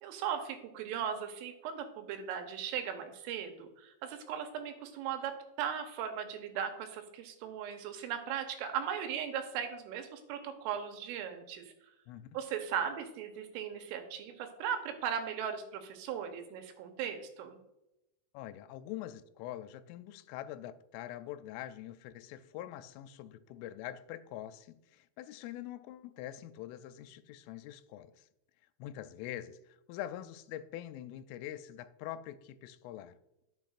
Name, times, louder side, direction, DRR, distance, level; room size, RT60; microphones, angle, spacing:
voice 1, 0.0-11.7 12.4-17.6, right 8 dB, 85° right, 3.5 m, -38 dB
voice 2, 12.1-12.4 18.3-28.3 28.8-33.2, left 12 dB, 90° left, 3.1 m, -44 dB
12.0 x 7.1 x 2.4 m
omnidirectional pair, 5.6 m